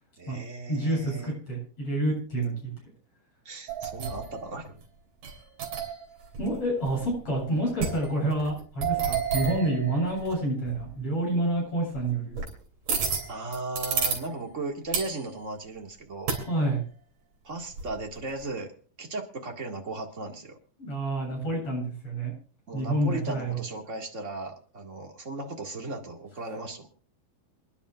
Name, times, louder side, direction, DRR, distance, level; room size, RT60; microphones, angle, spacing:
voice 1, 0.2-1.4 3.5-4.8 13.3-16.3 17.4-18.7 19.0-20.6 22.7-26.9, right 2 dB, 25° right, 2 dB, 1.9 m, -36 dB
voice 2, 0.7-2.7 6.4-12.4 16.5-16.8 20.8-22.3 22.7-23.6, right 1 dB, 45° left, -2 dB, 9.0 m, -28 dB
sound 1, 3.7-4.5 5.2-6.0 6.3-6.5 6.8-7.4 7.8-10.3 10.6-10.9 11.9-12.5 12.9-14.2 14.9-15.2 16.3-16.5 17.7-18.4, right 6 dB, 70° right, 4.6 m, -31 dB
28.0 x 10.5 x 2.5 m, 0.40 s
omnidirectional pair, 3.7 m